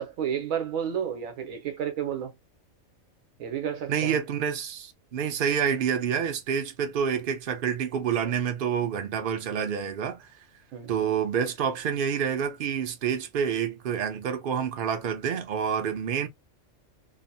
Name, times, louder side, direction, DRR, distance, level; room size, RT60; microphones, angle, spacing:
voice 1, 0.0-2.3 3.4-4.2 10.7-11.1, right 8 dB, 75° right, 1.1 m, -31 dB
voice 2, 3.9-10.3 10.9-16.3, right 7 dB, 50° right, 0.7 m, -28 dB
2.8 x 2.0 x 2.6 m
omnidirectional pair, 1.4 m